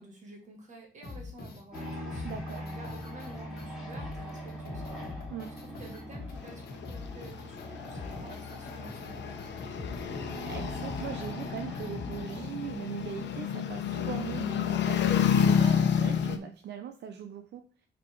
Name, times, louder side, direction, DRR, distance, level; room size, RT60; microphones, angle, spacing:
voice 1, 0.0-2.3 2.6-5.0 5.8-9.7, right 2 dB, 40° right, 1 dB, 2.0 m, -49 dB
sound 1, 1.0-12.5, left 4 dB, 55° left, 1.3 m, -43 dB
sound 2, 1.7-13.8, equal, ahead, 2.7 m, -43 dB
voice 2, 2.2-2.6 5.3-5.5 10.0-17.6, right 9 dB, 70° right, 6 dB, 0.6 m, -40 dB
sound 3, 6.4-16.4, left 7 dB, 75° left, 0.9 m, -30 dB
6.0 x 4.1 x 4.7 m, 0.38 s
wide cardioid pair, 180°, 19 cm